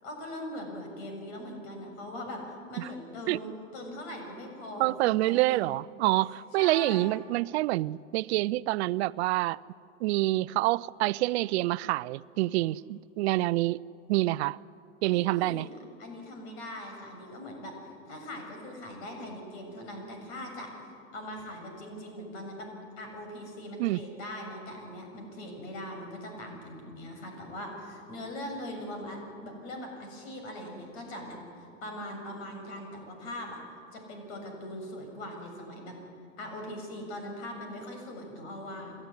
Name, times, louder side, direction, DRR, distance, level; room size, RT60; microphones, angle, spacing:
voice 1, 0.0-5.6 6.6-7.1 15.1-15.6 16.0-20.7 21.1-33.6 33.9-36.0 36.4-39.0, left 1 dB, 65° left, 7.3 m, -41 dB
voice 2, 4.8-9.6 10.0-13.8 14.1-14.6 15.0-15.7 23.8-24.0, right 18 dB, 65° right, 0.5 m, -27 dB
29.0 x 13.0 x 9.9 m
hypercardioid pair, 90°, 36 cm